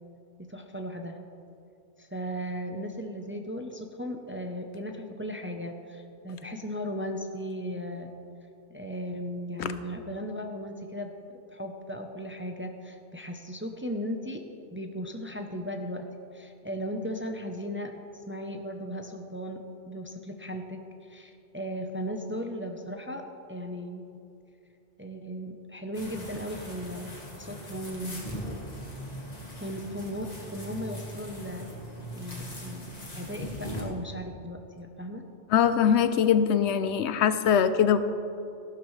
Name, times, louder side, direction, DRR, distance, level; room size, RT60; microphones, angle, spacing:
voice 1, 0.4-1.2 2.0-8.1 8.7-11.1 11.5-14.4 14.7-16.1 16.3-19.6 19.9-23.2 23.5-24.0 25.0-28.4 29.6-31.7 32.1-32.9 33.1-35.2, equal, 15° right, 4 dB, 0.5 m, -36 dB
sound 1, 25.9-33.8, equal, 40° left, 1.8 m, -40 dB
voice 2, 35.5-38.0, left 8 dB, 90° left, 11 dB, 0.9 m, -22 dB
14.5 x 12.0 x 3.2 m, 2.7 s
omnidirectional pair, 1.1 m